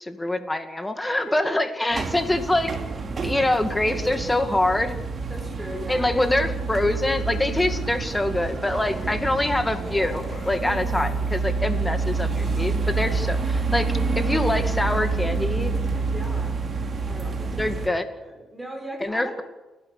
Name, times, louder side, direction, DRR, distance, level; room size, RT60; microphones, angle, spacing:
voice 1, 0.1-2.7 3.2-5.0 5.9-15.7 17.6-18.1 19.0-19.4, left 1 dB, 10° left, 8 dB, 2.2 m, -25 dB
voice 2, 1.2-1.7 5.3-6.1 8.6-9.3 10.5-11.2 11.7-12.0 15.9-16.6 17.1-19.4, right 1 dB, 10° right, 1 dB, 6.7 m, -39 dB
sound 1, 1.9-17.9, right 4 dB, 40° right, 2.9 m, -28 dB
sound 2, 6.8-11.1 12.2-12.7, left 2 dB, 35° left, 5.8 m, -42 dB
30.0 x 11.5 x 8.3 m, 1.1 s
cardioid pair, 90°, 0 cm